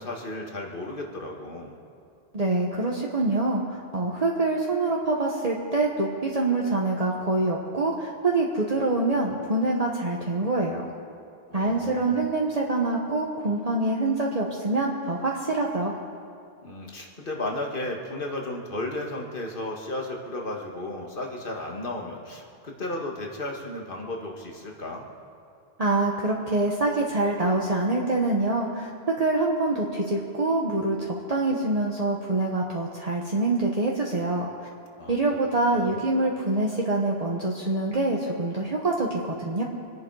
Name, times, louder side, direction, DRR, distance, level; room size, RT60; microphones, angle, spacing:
voice 1, 0.0-1.8 11.5-12.3 16.6-25.1 35.0-35.2 35.6-36.0, left 1 dB, 55° left, 1 dB, 2.0 m, -34 dB
voice 2, 2.3-10.9 11.5-15.9 25.8-34.5 35.1-39.6, right 2 dB, 35° right, -2 dB, 1.3 m, -25 dB
26.0 x 10.5 x 4.8 m, 2.5 s
omnidirectional pair, 1.1 m